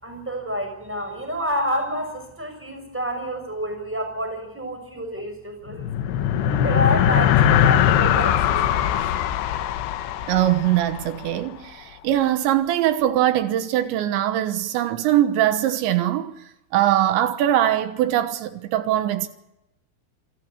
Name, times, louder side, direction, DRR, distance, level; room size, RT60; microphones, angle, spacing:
voice 1, 0.0-5.9 6.4-8.9, equal, 5° right, 6.0 m, -28 dB
sound 1, 5.7-11.4, left 10 dB, 75° left, 3.0 m, -21 dB
voice 2, 10.3-11.7 12.0-16.3 16.7-19.3, right 12 dB, 85° right, 3.4 m, -21 dB
27.5 x 14.0 x 7.9 m
omnidirectional pair, 5.3 m